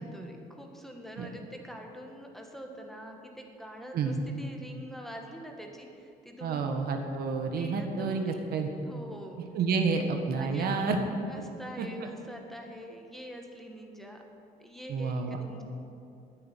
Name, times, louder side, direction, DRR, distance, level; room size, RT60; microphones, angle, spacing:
voice 1, 0.0-6.7 7.6-8.4 8.8-9.4 9.9-10.0 10.4-11.0 11.3-14.2 14.6-15.6, equal, ahead, 2 dB, 1.5 m, -44 dB
voice 2, 6.4-8.7 9.5-10.0 10.3-11.0 11.8-11.9 14.9-15.4, right 5 dB, 65° right, 4 dB, 1.5 m, -29 dB
9.7 x 9.4 x 9.2 m, 2.6 s
cardioid pair, 110°, 17 cm